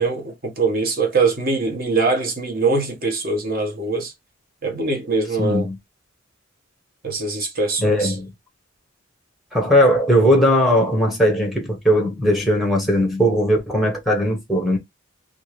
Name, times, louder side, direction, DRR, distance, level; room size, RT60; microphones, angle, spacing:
voice 1, 0.0-4.1 4.6-5.7 7.0-8.1, right 3 dB, 45° right, 1.0 m, -22 dB
voice 2, 5.4-5.8 7.8-8.3 9.5-14.8, equal, ahead, 0.8 m, -18 dB
2.7 x 2.5 x 3.1 m
head